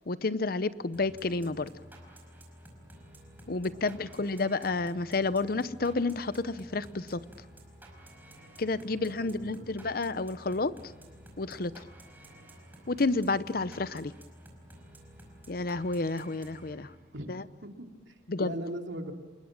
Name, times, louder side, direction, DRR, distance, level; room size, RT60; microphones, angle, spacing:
voice 1, 0.0-1.7 3.5-7.2 8.6-10.7 11.4-11.9 12.9-14.1 15.5-16.9 17.3-17.4 18.3-18.5, left 3 dB, 50° left, 15 dB, 0.7 m, -30 dB
sound 1, 0.9-17.2, right 1 dB, 10° right, 5.0 m, -52 dB
voice 2, 3.4-4.1 8.8-9.7 17.1-17.3 17.6-19.1, right 1 dB, 75° right, 3 dB, 2.8 m, -41 dB
28.5 x 21.5 x 7.5 m, 1.3 s
head